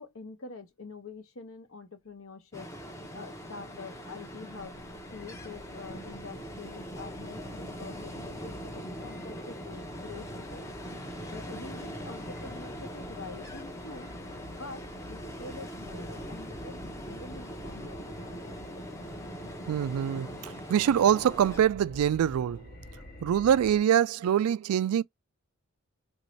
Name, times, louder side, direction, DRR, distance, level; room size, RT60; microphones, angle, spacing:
voice 1, 0.0-4.8 5.1-10.7 11.3-14.1 14.5-18.6, left 3 dB, 70° left, 0.9 m, -46 dB
Ocean, 2.5-21.6, equal, 15° left, 0.6 m, -42 dB
sound 1, 4.7-23.8, left 1 dB, 45° left, 0.8 m, -49 dB
voice 2, 19.7-22.6 23.2-25.0, right 9 dB, 85° right, 0.3 m, -24 dB
3.0 x 2.7 x 3.1 m
head